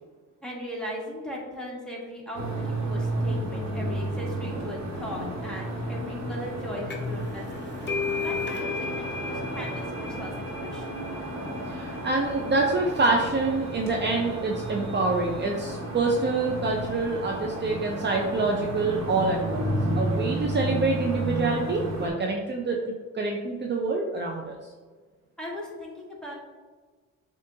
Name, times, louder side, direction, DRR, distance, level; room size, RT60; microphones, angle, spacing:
voice 1, 0.4-7.6 8.2-10.9 25.4-26.4, equal, ahead, -4 dB, 1.4 m, -38 dB
sound 1, 2.3-22.1, right 1 dB, 65° right, 1.3 m, -32 dB
sound 2, 6.9-7.2 7.5-14.8, left 4 dB, 35° left, 0.8 m, -36 dB
voice 2, 11.7-24.6, right 3 dB, 35° right, 0 dB, 0.6 m, -26 dB
7.3 x 2.5 x 2.7 m, 1.4 s
cardioid pair, 90°, 30 cm